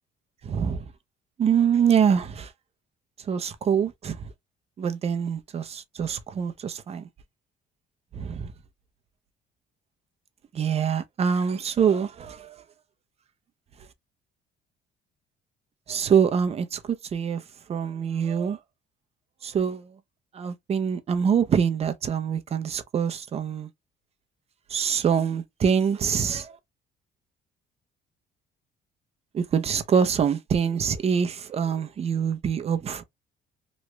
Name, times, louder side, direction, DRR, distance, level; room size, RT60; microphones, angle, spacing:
voice 1, 0.4-0.8 1.4-2.5 3.3-4.3 4.8-7.1 8.1-8.5 10.5-12.6 15.9-17.4 17.7-18.6 19.4-19.9 20.3-23.7 24.7-26.6 29.3-33.0, right 7 dB, 40° right, 0.6 m, -25 dB
3.1 x 2.4 x 3.2 m
cardioid pair, 110°, 17 cm